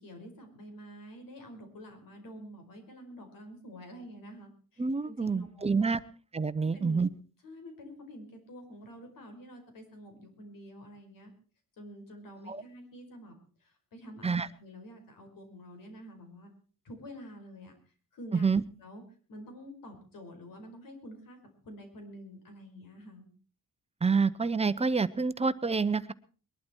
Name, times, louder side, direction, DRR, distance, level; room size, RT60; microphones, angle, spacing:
voice 1, 0.0-6.0 6.6-7.0 7.4-11.3 11.8-16.5 16.8-17.7 18.1-18.5 18.8-19.0 19.3-21.4 21.6-23.3, equal, 75° left, 5 dB, 5.2 m, -48 dB
voice 2, 4.8-6.0 6.3-7.1 12.5-12.6 14.2-14.5 18.3-18.6 24.0-26.1, right 4 dB, 20° right, 15 dB, 0.7 m, -27 dB
21.5 x 12.0 x 4.5 m, 0.40 s
cardioid pair, 130°, 34 cm